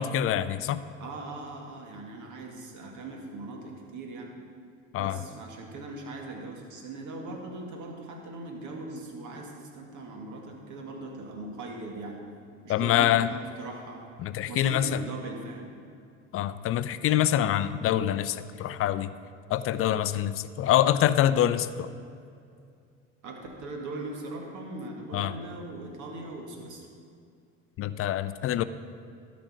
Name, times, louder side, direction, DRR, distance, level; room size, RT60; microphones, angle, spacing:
voice 1, 0.0-0.8 4.9-5.2 12.7-13.3 14.2-15.0 16.3-19.1 19.5-21.9 25.1-25.3 27.8-28.6, left 11 dB, 40° left, 14 dB, 0.4 m, -25 dB
voice 2, 1.0-4.3 5.0-12.2 12.6-14.1 14.5-15.7 23.2-26.8, right 2 dB, 55° right, 1 dB, 2.0 m, -40 dB
12.0 x 5.2 x 6.1 m, 2.3 s
hypercardioid pair, 70°, 36 cm